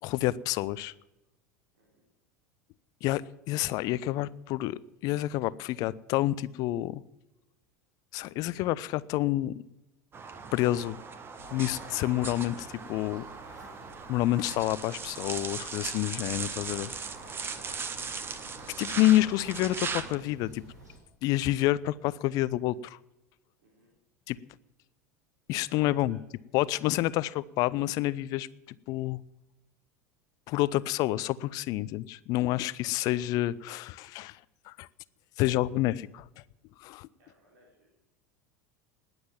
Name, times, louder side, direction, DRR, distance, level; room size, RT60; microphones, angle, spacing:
voice 1, 0.0-0.9 3.0-7.0 8.1-9.5 10.5-11.0 11.5-13.2 14.1-16.9 18.8-20.6 21.2-23.0 24.3-24.4 25.5-26.2 26.5-29.2 30.5-34.4 34.7-34.9 35.4-36.2 36.8-37.1, left 16 dB, 45° left, 20 dB, 0.6 m, -28 dB
sound 1, 10.1-20.2, right 5 dB, 25° right, 1.4 m, -38 dB
sound 2, 11.4-21.0, equal, 75° right, 6.4 m, -52 dB
voice 2, 23.6-23.9 25.7-26.2 37.2-37.9, equal, 55° right, -3 dB, 4.4 m, -63 dB
19.5 x 8.0 x 7.3 m, 0.98 s
figure-of-eight pair, 80°, 9 cm